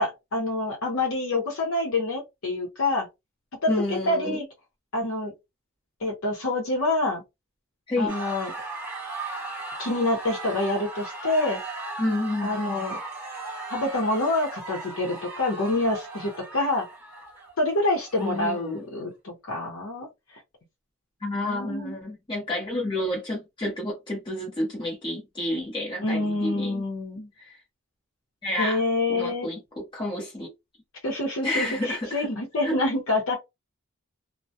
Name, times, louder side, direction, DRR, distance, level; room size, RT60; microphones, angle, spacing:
voice 1, 0.0-3.1 3.6-4.5 4.9-5.3 6.0-7.2 8.0-8.5 9.8-11.6 12.4-13.0 13.7-16.9 17.6-20.1 21.3-21.9 26.0-27.3 28.6-29.5 31.0-33.4, left 2 dB, 70° left, 0.7 m, -27 dB
voice 2, 3.7-4.4 7.9-8.1 12.0-12.8 18.2-18.8 21.2-26.8 27.4-27.6 28.4-28.8 29.1-30.5 31.4-32.3 32.6-32.7, left 1 dB, 20° left, 0.7 m, -30 dB
sound 1, 8.1-18.8, right 2 dB, 10° right, 0.9 m, -37 dB
2.2 x 2.1 x 2.7 m
head